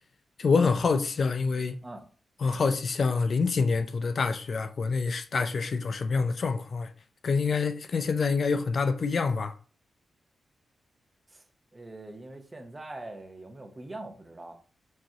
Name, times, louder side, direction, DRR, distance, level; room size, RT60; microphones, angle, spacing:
voice 1, 0.4-1.8 2.4-6.9 7.2-9.6, left 4 dB, 55° left, 0.4 m, -26 dB
voice 2, 11.7-14.6, right 2 dB, 25° right, 0.8 m, -43 dB
4.6 x 3.0 x 2.8 m
cardioid pair, 75°, 0 cm